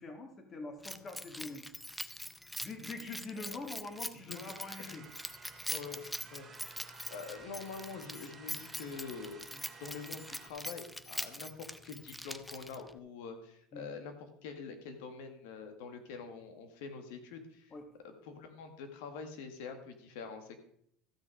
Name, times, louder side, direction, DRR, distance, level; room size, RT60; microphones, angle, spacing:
voice 1, 0.0-1.6 2.6-5.0 9.5-9.7 13.7-13.9 17.7-17.8, left 3 dB, 30° left, 5 dB, 1.9 m, -44 dB
Keys jangling, 0.8-13.0, left 1 dB, 5° left, 0.5 m, -43 dB
sound 1, 4.3-10.5, right 4 dB, 20° right, 2.6 m, -54 dB
voice 2, 5.7-6.0 6.3-6.5 7.1-9.5 9.8-17.7 18.0-20.6, left 5 dB, 80° left, 7 dB, 1.8 m, -45 dB
14.0 x 6.2 x 4.8 m, 0.68 s
supercardioid pair, 115°, 0 cm